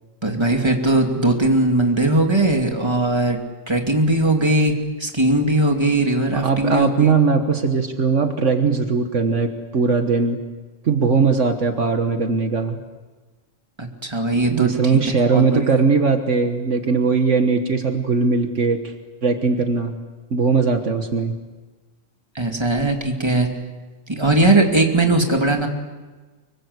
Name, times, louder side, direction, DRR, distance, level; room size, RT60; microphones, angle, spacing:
voice 1, 0.2-3.4 3.7-4.7 5.0-7.1 13.8-14.7 15.0-15.6 22.3-23.5 24.1-25.7, right 2 dB, 20° right, 2 dB, 2.7 m, -19 dB
voice 2, 6.4-10.4 10.8-12.8 14.5-18.9 19.2-19.9 20.3-21.3, right 4 dB, 65° right, 6 dB, 1.7 m, -19 dB
25.0 x 23.5 x 8.1 m, 1.3 s
omnidirectional pair, 1.4 m